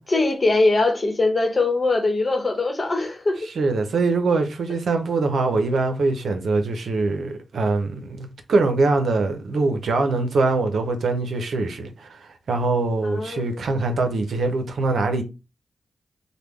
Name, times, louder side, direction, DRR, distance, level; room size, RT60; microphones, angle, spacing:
voice 1, 0.0-3.5 13.0-13.5, left 2 dB, 45° left, 1.0 m, -21 dB
voice 2, 3.5-15.2, right 3 dB, 80° right, 0.6 m, -23 dB
3.4 x 2.1 x 3.2 m
cardioid pair, 55°, 0 cm